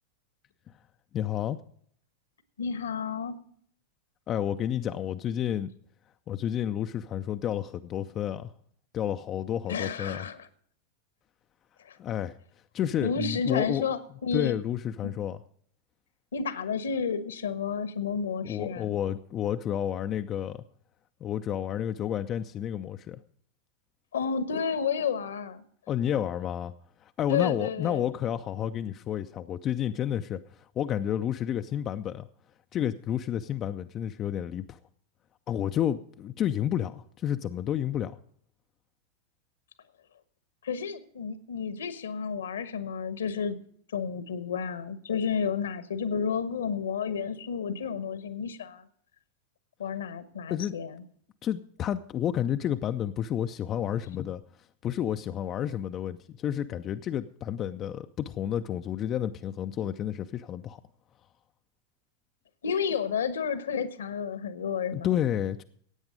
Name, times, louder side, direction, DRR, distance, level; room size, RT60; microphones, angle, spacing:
voice 1, 1.1-1.6 4.3-5.7 6.3-8.5 8.9-10.3 12.0-12.4 12.7-13.8 14.3-15.4 18.4-20.6 21.2-23.2 25.9-26.7 27.0-32.3 32.7-34.8 35.5-38.2 50.5-50.7 51.4-54.4 54.8-60.8 64.9-65.6, left 10 dB, 30° left, 8 dB, 0.5 m, -30 dB
voice 2, 2.6-3.4 9.7-10.5 11.8-12.0 13.0-14.6 15.0-15.1 16.3-19.0 24.1-25.6 27.3-28.1 40.6-43.6 43.9-48.8 49.8-51.0 62.6-65.1, left 6 dB, 65° left, 13 dB, 1.2 m, -31 dB
16.0 x 8.8 x 5.1 m, 0.64 s
figure-of-eight pair, 90°, 0 cm